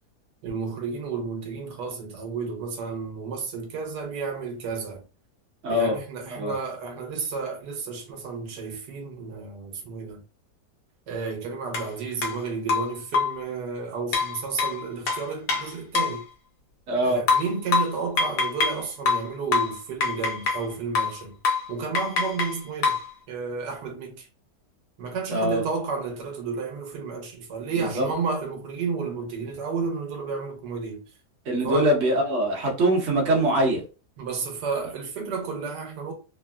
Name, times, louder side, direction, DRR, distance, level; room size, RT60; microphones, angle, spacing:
voice 1, 0.4-5.0 5.7-10.2 11.1-16.2 17.0-21.4 21.7-23.0 23.3-24.3 25.0-31.0 31.6-31.9 34.2-36.1, right 5 dB, 90° right, 1.3 m, -32 dB
voice 2, 5.6-6.0 6.4-6.6 16.9-17.2 25.3-25.6 27.9-28.0 31.4-33.8, right 1 dB, 50° right, 1.2 m, -22 dB
sound 1, 11.7-11.9 12.2-12.4 12.7-13.4 14.1-16.2 17.3-18.8 19.1-20.7 21.0-21.2 21.4-21.7 22.0-23.1, left 5 dB, 85° left, 1.4 m, -25 dB
3.4 x 2.1 x 2.3 m
omnidirectional pair, 1.8 m